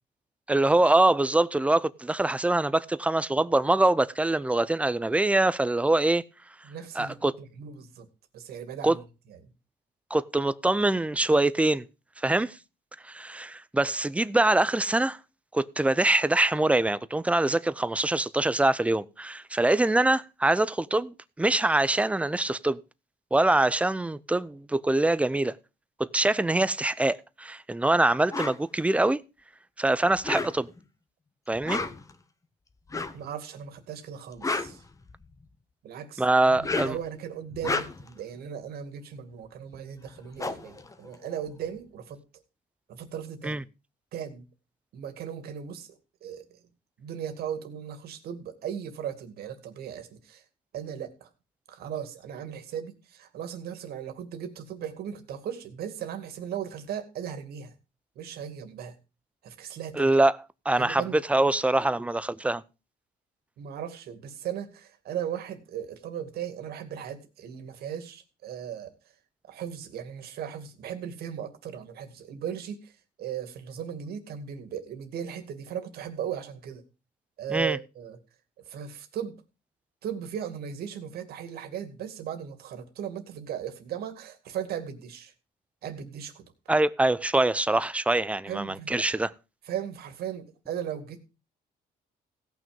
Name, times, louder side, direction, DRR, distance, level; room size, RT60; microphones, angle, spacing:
voice 1, 0.5-6.2 7.0-7.3 8.8-9.0 10.1-11.9 12.2-12.6 13.0-15.2 15.5-22.8 23.3-25.6 26.0-29.2 29.8-30.7 31.5-31.8 36.2-36.9 43.4-43.6 59.9-60.4 60.7-62.6 77.5-77.8 86.7-89.3, right 2 dB, 5° right, 0.6 m, -24 dB
voice 2, 6.6-8.1 8.3-9.0 9.3-9.4 33.1-34.8 35.8-42.2 42.9-43.6 44.1-44.4 44.9-46.6 47.0-50.4 50.7-51.3 51.7-57.7 58.2-58.9 59.4-60.2 60.8-61.2 63.6-68.9 69.5-76.8 77.4-78.2 78.7-79.4 80.0-85.3 85.8-86.5 88.5-89.0 89.7-91.2, right 9 dB, 65° right, 2.3 m, -37 dB
sound 1, 28.3-28.6 30.1-30.8 31.5-32.1 32.9-33.2 34.2-35.4 36.4-37.1 37.5-38.2 39.7-39.8 40.1-41.7, left 3 dB, 20° left, 1.1 m, -32 dB
16.5 x 6.2 x 5.3 m
cardioid pair, 110°, 17 cm